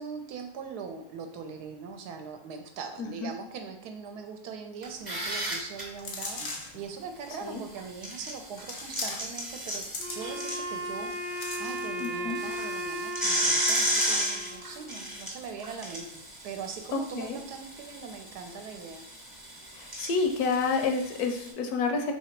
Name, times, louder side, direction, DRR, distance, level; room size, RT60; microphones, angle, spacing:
voice 1, 0.0-9.8 10.1-16.1 16.4-19.1, right 5 dB, 80° right, 5 dB, 1.1 m, -41 dB
voice 2, 3.0-3.3 7.4-7.6 12.0-12.4 17.1-17.4 19.8-22.1, left 4 dB, 75° left, 4 dB, 1.0 m, -29 dB
sound 1, 4.8-5.8 7.8-11.4 11.7-11.8 12.3-21.5, equal, 20° right, 0.6 m, -33 dB
sound 2, 6.0-6.8 7.6-7.7 8.6-9.4 9.7-10.5 11.0-12.2 12.5-12.6 12.9-13.1 13.7-14.5 14.9-15.0, left 2 dB, 50° left, 0.6 m, -38 dB
Wind instrument woodwind instrument, 10.0-15.2, equal, 55° right, 0.9 m, -36 dB
2.9 x 2.9 x 4.3 m, 0.70 s
omnidirectional pair, 1.7 m